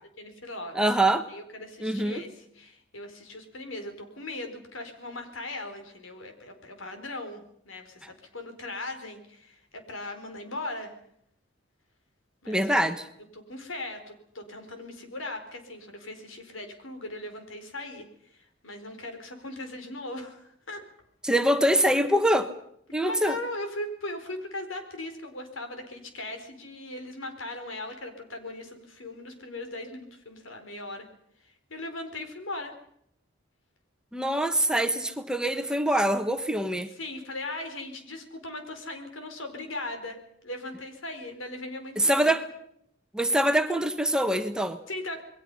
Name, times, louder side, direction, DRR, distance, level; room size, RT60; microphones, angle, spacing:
voice 1, 0.2-0.8 1.3-10.9 12.4-12.9 13.3-18.0 18.3-20.8 23.0-31.1 31.4-32.7 36.9-40.2 40.4-42.3 44.9-45.2, left 2 dB, 90° left, 6 dB, 4.6 m, -39 dB
voice 2, 0.7-1.3 1.8-2.2 12.5-13.1 21.2-22.5 22.9-23.4 34.1-36.9 42.0-42.5 43.1-44.8, right 1 dB, 5° right, 7 dB, 1.2 m, -24 dB
28.0 x 21.5 x 5.6 m, 0.72 s
head